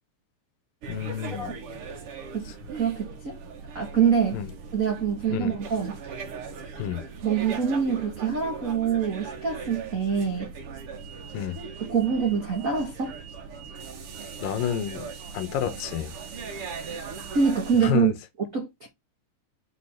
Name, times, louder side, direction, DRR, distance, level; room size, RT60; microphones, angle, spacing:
sound 1, 0.8-17.9, right 5 dB, 65° right, 1.4 m, -39 dB
voice 1, 0.9-1.6 4.3-4.5 5.3-5.5 6.8-7.0 11.3-11.6 14.4-16.1 17.8-18.1, left 10 dB, 80° left, 2.5 m, -29 dB
voice 2, 2.7-3.4 3.7-4.4 4.7-5.9 7.2-10.5 11.8-13.1 17.3-18.1 18.5-18.9, right 7 dB, 80° right, 0.7 m, -25 dB
6.3 x 4.6 x 3.5 m
omnidirectional pair, 4.0 m